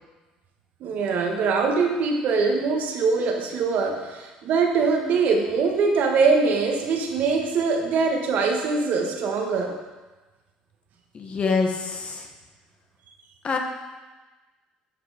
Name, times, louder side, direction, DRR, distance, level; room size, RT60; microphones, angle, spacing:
voice 1, 0.8-9.8, right 4 dB, 65° right, 2 dB, 1.4 m, -23 dB
voice 2, 11.1-12.3 13.4-13.6, left 4 dB, 40° left, 3 dB, 1.3 m, -25 dB
9.8 x 5.0 x 5.0 m, 1.2 s
supercardioid pair, 80°, 3 cm